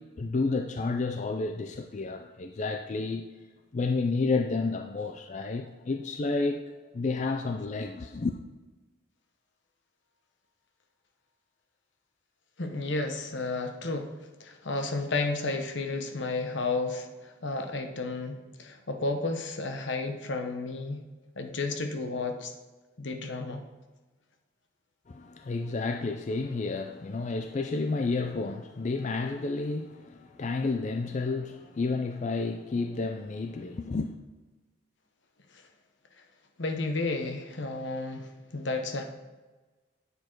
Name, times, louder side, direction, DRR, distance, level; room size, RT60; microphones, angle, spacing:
voice 1, 0.0-3.3 3.7-8.4 25.1-34.1, left 3 dB, 35° left, 0.4 m, -31 dB
voice 2, 12.6-14.1 14.4-17.1 17.4-21.0 21.4-22.5 23.0-23.6 36.6-39.0, left 3 dB, 70° left, 1.0 m, -32 dB
9.8 x 6.8 x 4.6 m
head